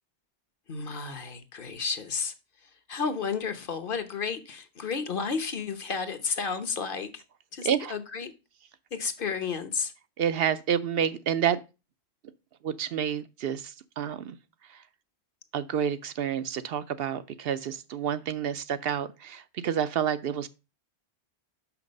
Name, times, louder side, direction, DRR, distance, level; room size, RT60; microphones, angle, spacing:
voice 1, 0.7-2.3 2.9-7.2 7.5-8.3 8.9-9.9, left 5 dB, 55° left, 1.1 m, -32 dB
voice 2, 10.2-11.6 12.6-14.4 14.7-14.8 15.5-20.5, right 8 dB, 65° right, 0.7 m, -29 dB
6.2 x 5.9 x 5.2 m
omnidirectional pair, 1.1 m